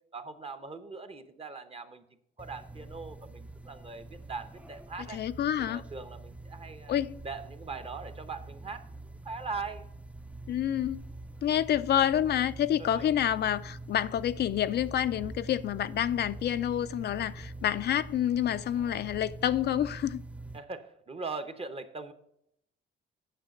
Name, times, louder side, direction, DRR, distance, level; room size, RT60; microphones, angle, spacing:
voice 1, 0.1-2.0 2.4-5.2 5.6-7.0 7.2-8.9 9.2-9.8 12.8-13.1 20.5-22.1, right 4 dB, 30° right, 0.9 m, -41 dB
sound 1, 2.4-20.6, right 2 dB, 5° right, 0.4 m, -45 dB
voice 2, 5.1-5.8 6.9-7.2 10.5-11.0 11.4-20.2, left 10 dB, 55° left, 0.4 m, -28 dB
9.0 x 5.8 x 6.3 m
cardioid pair, 90°, 20 cm